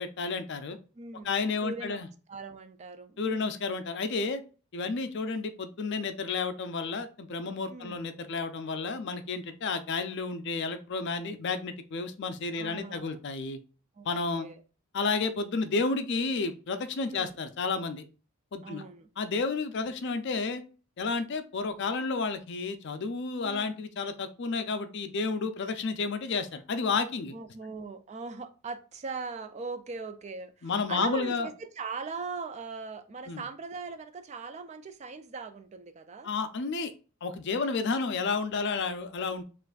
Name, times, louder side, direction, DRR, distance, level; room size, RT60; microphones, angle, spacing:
voice 1, 0.0-0.8 1.2-2.1 3.2-4.4 4.7-13.6 14.1-14.5 14.9-18.0 18.5-18.8 19.2-20.6 21.0-27.4 30.6-31.5 33.3-33.4 36.2-36.9 37.2-39.4, left 4 dB, 50° left, 0.4 m, -31 dB
voice 2, 0.9-3.5 7.7-8.0 12.5-13.2 14.0-14.1 14.3-14.6 17.0-17.4 18.6-19.1 19.8-19.9 23.4-23.8 27.3-36.3 37.5-37.9, right 4 dB, 30° right, 0.3 m, -40 dB
6.5 x 2.5 x 2.3 m
head